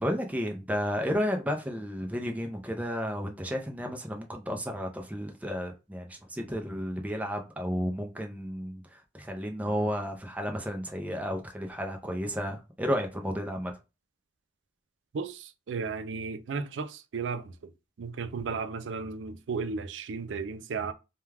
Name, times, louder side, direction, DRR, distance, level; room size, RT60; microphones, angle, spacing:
voice 1, 0.0-13.7, equal, 10° right, 0.4 m, -32 dB
voice 2, 15.1-17.5 18.0-20.9, right 5 dB, 85° right, 0.4 m, -34 dB
2.3 x 2.2 x 3.2 m
head